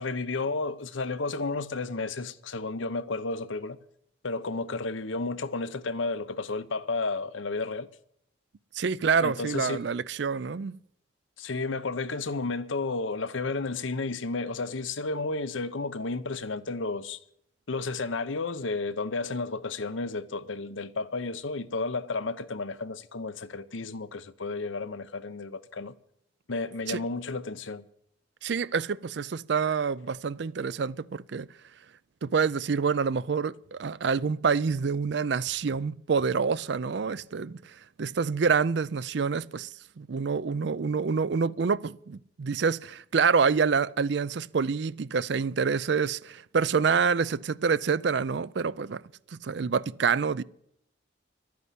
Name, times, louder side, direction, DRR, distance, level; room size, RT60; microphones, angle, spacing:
voice 1, 0.0-3.8 4.2-7.9 9.2-9.9 11.4-17.2 17.7-26.0 26.5-27.9, left 3 dB, 75° left, 0.8 m, -32 dB
voice 2, 8.7-10.8 26.9-27.0 28.4-31.5 32.2-39.7 40.0-49.0 49.3-50.4, right 5 dB, 60° right, 0.4 m, -27 dB
12.5 x 9.6 x 8.4 m
head